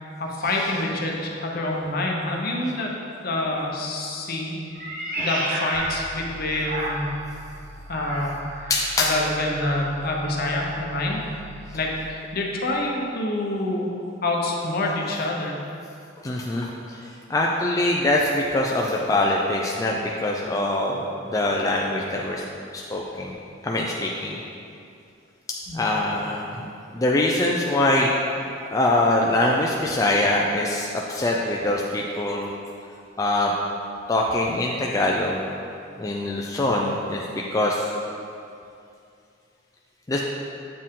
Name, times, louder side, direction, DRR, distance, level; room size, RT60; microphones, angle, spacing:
voice 1, 0.2-2.9 3.2-7.1 7.9-8.3 9.0-11.2 11.7-13.9 14.2-15.6 25.7-25.8, left 2 dB, 55° left, -1 dB, 0.8 m, -27 dB
Meow, 4.7-7.3 7.9-9.9, right 1 dB, 50° right, 1.4 m, -32 dB
sound 1, 5.7-12.1, equal, 70° right, 0.8 m, -43 dB
voice 2, 8.7-9.1 16.2-17.0 17.3-22.4 22.7-23.3 23.6-24.4 25.7-28.1 28.7-32.5 33.2-33.5 34.1-35.4 36.0-37.8 40.1-40.2, left 1 dB, 20° left, -2 dB, 0.4 m, -23 dB
7.5 x 4.4 x 3.7 m, 2.5 s
head